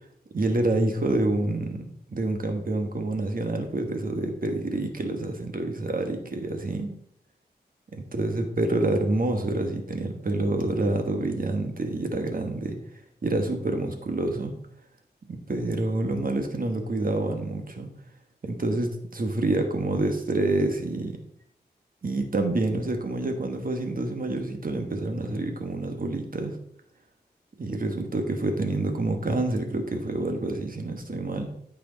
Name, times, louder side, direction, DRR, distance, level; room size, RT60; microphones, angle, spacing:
voice 1, 0.3-6.9 7.9-12.8 13.2-14.6 15.3-17.9 18.4-21.2 22.0-26.6 27.6-31.5, right 2 dB, 55° right, 5 dB, 1.5 m, -27 dB
12.0 x 4.8 x 4.0 m, 0.71 s
cardioid pair, 55°, 17 cm